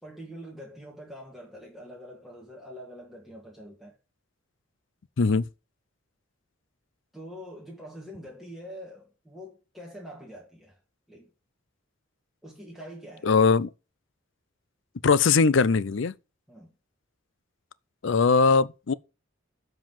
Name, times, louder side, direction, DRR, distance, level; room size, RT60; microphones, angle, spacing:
voice 1, 0.0-4.0 7.1-10.8 11.1-11.3 12.4-13.3 16.5-16.7, equal, ahead, 1.8 m, -44 dB
voice 2, 5.2-5.5 13.2-13.7 15.0-16.1 18.0-18.9, left 4 dB, 60° left, 0.5 m, -20 dB
7.6 x 5.6 x 7.2 m
head